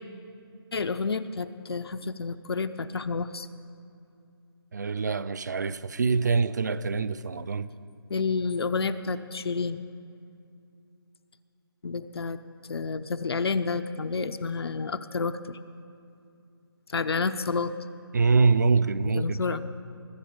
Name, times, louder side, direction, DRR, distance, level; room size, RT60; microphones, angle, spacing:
voice 1, 0.7-3.5 8.1-9.8 11.8-12.4 12.7-15.6 16.9-17.7 19.2-19.6, left 4 dB, 75° left, 0.5 m, -29 dB
voice 2, 4.7-7.7 18.1-19.4, right 4 dB, 45° right, 0.4 m, -24 dB
20.5 x 7.2 x 5.1 m
hypercardioid pair, 170°, 13 cm